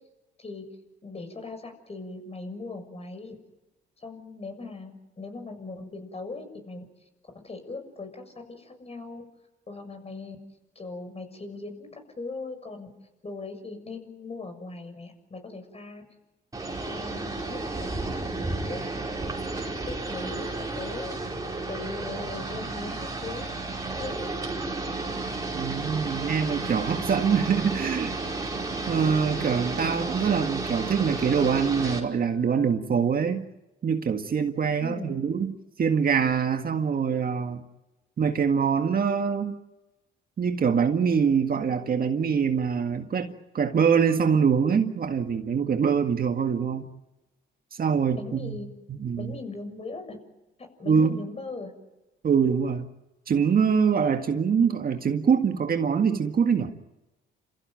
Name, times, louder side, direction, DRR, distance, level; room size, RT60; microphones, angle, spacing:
voice 1, 1.0-3.3 4.0-6.8 7.4-9.2 9.7-10.4 10.8-12.9 13.2-16.0 16.8-18.8 19.5-21.2 21.7-23.5 23.9-24.3 34.8-35.2 48.2-48.7 49.2-50.2 50.8-51.7, left 3 dB, 30° left, 6 dB, 6.9 m, -39 dB
sound 1, 16.5-32.0, right 3 dB, 20° right, 5.0 m, -32 dB
voice 2, 25.5-28.1 28.9-33.4 33.8-35.5 35.8-37.6 38.2-39.6 40.4-46.8 47.7-48.6 48.9-49.3 50.9-51.2 52.2-52.9 53.3-56.7, right 6 dB, 45° right, 6 dB, 1.8 m, -24 dB
Wind instrument woodwind instrument, 26.5-32.7, right 5 dB, 10° left, 6.1 m, -50 dB
29.5 x 15.5 x 9.1 m, 1.0 s
cardioid pair, 90°, 20 cm